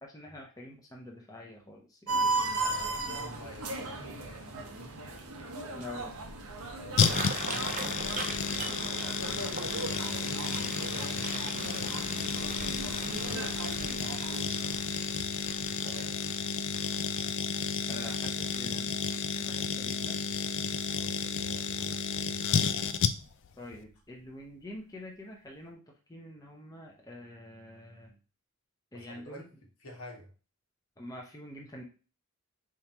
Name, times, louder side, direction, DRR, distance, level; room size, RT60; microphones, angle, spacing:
voice 1, 0.0-2.1 5.7-6.2 17.9-18.9 19.3-20.2 23.6-25.8 26.1-28.2 28.9-29.4 31.0-31.8, left 1 dB, 15° left, -1 dB, 0.7 m, -46 dB
sound 1, 2.1-14.8, right 2 dB, 80° right, 1.0 m, -37 dB
voice 2, 2.5-4.9 5.6-5.7 6.8-8.6 9.9-12.6 15.7-16.4 20.9-22.4 28.9-29.4 29.8-30.3, equal, 70° left, 1 dB, 1.3 m, -48 dB
sound 2, 6.8-20.0 20.4-20.7 21.0-21.5 21.9-22.0 23.3-23.4 23.8-23.9 24.4-24.5, right 3 dB, 35° right, 0.7 m, -42 dB
sound 3, 7.0-23.5 23.7-23.8, left 6 dB, 55° left, 0.3 m, -32 dB
4.3 x 3.7 x 2.9 m, 0.35 s
head